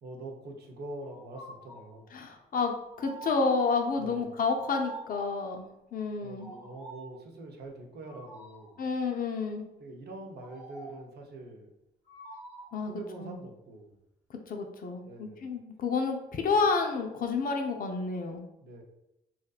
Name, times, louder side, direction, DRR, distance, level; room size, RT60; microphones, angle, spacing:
voice 1, 0.0-2.2 4.0-4.3 6.2-8.8 9.8-11.7 12.9-14.0 15.0-15.5 18.6-18.8, right 2 dB, 55° right, 2 dB, 0.6 m, -44 dB
sound 1, 1.1-1.9 2.9-3.8 4.6-5.5 6.3-7.2 8.1-8.8 10.4-11.1 12.1-12.8, right 2 dB, 5° right, 1.1 m, -46 dB
voice 2, 2.1-6.5 8.8-9.7 12.7-12.9 13.2-13.4 14.5-18.5, left 4 dB, 45° left, 4 dB, 0.5 m, -30 dB
2.6 x 2.1 x 2.3 m, 0.87 s
supercardioid pair, 55°, 20 cm